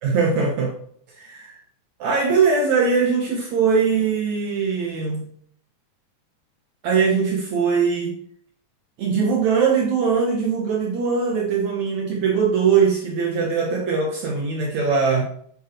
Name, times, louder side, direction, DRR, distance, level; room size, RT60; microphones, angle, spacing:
voice 1, 0.0-0.8 1.2-1.6 2.0-5.2 6.8-8.2 9.0-15.2, right 5 dB, 65° right, 0 dB, 2.2 m, -21 dB
8.8 x 8.1 x 3.0 m, 0.62 s
omnidirectional pair, 3.7 m